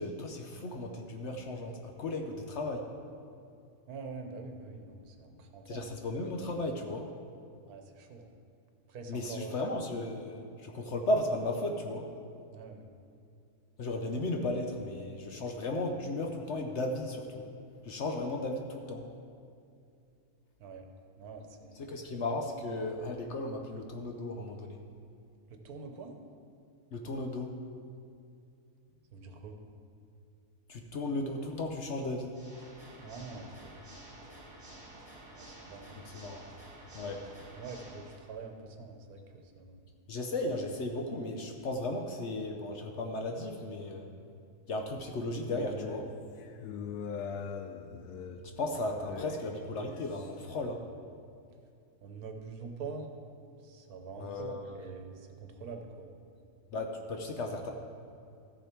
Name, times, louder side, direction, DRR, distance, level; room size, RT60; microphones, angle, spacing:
voice 1, 0.0-2.8 5.7-7.1 9.1-12.1 13.8-17.4 17.8-19.0 21.7-24.8 26.9-27.6 30.7-32.3 35.9-36.4 36.9-37.2 40.1-44.1 44.7-46.1 48.6-50.8 54.2-54.8 56.7-57.7, left 2 dB, 55° left, 3 dB, 0.9 m, -35 dB
voice 2, 3.9-5.9 7.7-8.3 8.9-9.5 12.5-12.9 20.6-20.9 21.2-21.9 25.5-26.2 29.1-29.6 33.0-33.8 35.3-36.0 37.5-39.9 47.1-47.4 52.0-53.1 53.6-56.1, right 4 dB, 75° right, 5 dB, 1.4 m, -45 dB
Water / Mechanisms, 32.3-38.3, right 1 dB, 30° right, 2.0 m, -51 dB
sound 1, 45.5-50.4, left 6 dB, 85° left, 1.2 m, -42 dB
14.0 x 6.7 x 4.5 m, 2.5 s
omnidirectional pair, 1.6 m